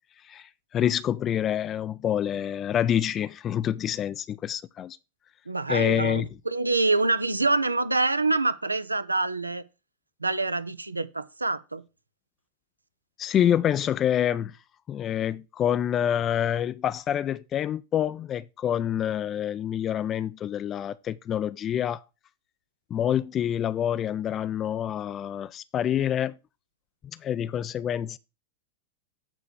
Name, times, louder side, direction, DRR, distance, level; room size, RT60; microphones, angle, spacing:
voice 1, 0.2-5.0 5.7-6.3 13.2-14.6 14.9-22.0 22.9-26.3 27.2-28.2, left 10 dB, 30° left, 0.3 m, -27 dB
voice 2, 5.5-9.6 10.2-11.8, right 3 dB, 80° right, 0.5 m, -26 dB
8.9 x 3.2 x 6.6 m
figure-of-eight pair, 90°, 0 cm